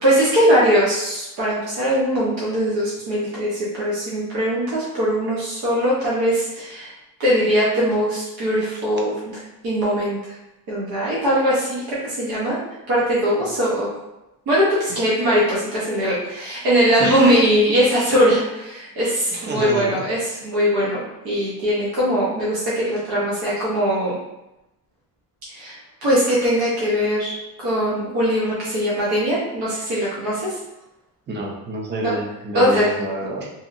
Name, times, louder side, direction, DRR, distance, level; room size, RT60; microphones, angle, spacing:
voice 1, 0.0-6.9 7.2-9.1 9.6-10.2 10.7-12.6 12.9-13.9 14.5-24.1 25.5-27.3 27.6-30.6 32.0-32.1 32.5-32.9, equal, 85° right, -7 dB, 0.9 m, -21 dB
voice 2, 17.0-17.4 19.3-20.1 31.3-33.5, right 1 dB, 30° right, 0 dB, 0.5 m, -28 dB
2.7 x 2.7 x 2.5 m, 0.93 s
cardioid pair, 160°, 37 cm